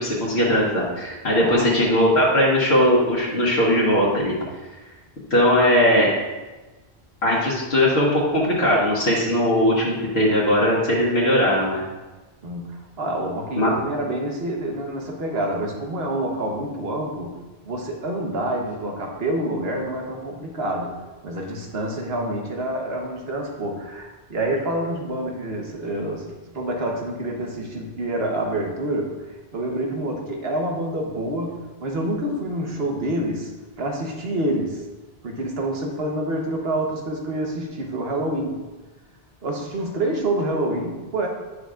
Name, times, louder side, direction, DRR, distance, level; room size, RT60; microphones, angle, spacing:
voice 1, 0.0-4.4 5.3-6.1 7.2-11.8 13.6-13.7, left 1 dB, 80° left, -6 dB, 1.6 m, -19 dB
voice 2, 1.3-1.7 12.4-17.4 17.6-21.0 21.2-29.2 29.5-33.5 33.8-34.8 35.2-38.6 39.4-41.3, right 1 dB, 75° right, 1 dB, 1.3 m, -27 dB
9.6 x 6.4 x 2.5 m, 1.2 s
omnidirectional pair, 1.1 m